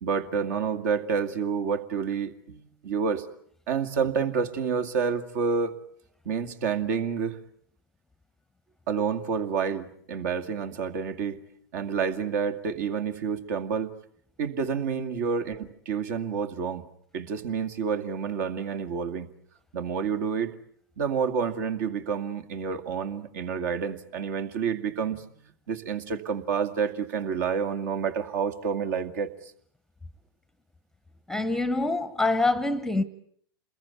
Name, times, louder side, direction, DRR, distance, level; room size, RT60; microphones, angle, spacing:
voice 1, 0.0-3.3 3.7-5.7 6.3-7.4 8.9-11.4 11.7-13.9 14.4-16.9 17.1-19.3 19.7-20.5 21.0-25.3 25.7-29.3, right 6 dB, 50° right, 2.3 m, -29 dB
voice 2, 31.3-33.0, left 2 dB, 5° left, 1.1 m, -25 dB
28.0 x 21.5 x 8.4 m
figure-of-eight pair, 105°, 12 cm